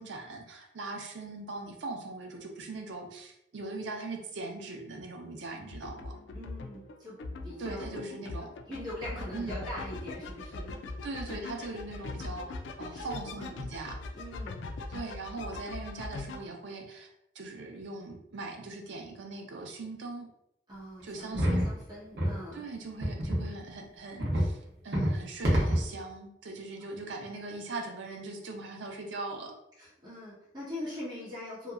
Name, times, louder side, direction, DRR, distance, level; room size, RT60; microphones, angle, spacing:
voice 1, 0.0-6.1 7.6-8.5 9.3-9.6 11.0-14.0 14.9-17.1 17.4-20.3 21.0-21.7 22.5-29.6, right 2 dB, 90° right, 3 dB, 0.5 m, -40 dB
sound 1, 5.7-16.4, left 2 dB, 90° left, 0.3 m, -41 dB
voice 2, 6.3-8.1 8.6-10.8 11.3-11.4 12.9-13.2 14.1-14.7 20.7-21.3 21.6-22.6 26.8-27.0 29.8-31.7, left 1 dB, 25° right, -8 dB, 1.0 m, -42 dB
sound 2, 21.3-21.7 22.2-22.4 23.0-23.5 24.2-24.5 24.9-25.2 25.4-25.9, equal, 65° right, 0.8 m, -26 dB
2.8 x 2.2 x 2.4 m, 0.82 s
head